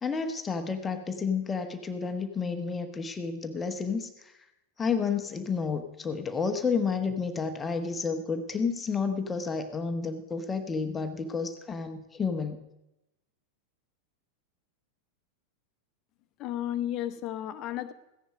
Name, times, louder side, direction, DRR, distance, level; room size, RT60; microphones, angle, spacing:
voice 1, 0.0-4.3 4.8-12.6, left 5 dB, 15° left, 6 dB, 1.1 m, -31 dB
voice 2, 16.4-17.9, left 12 dB, 35° left, 12 dB, 1.0 m, -33 dB
15.5 x 10.5 x 5.0 m, 0.91 s
figure-of-eight pair, 90°, 0 cm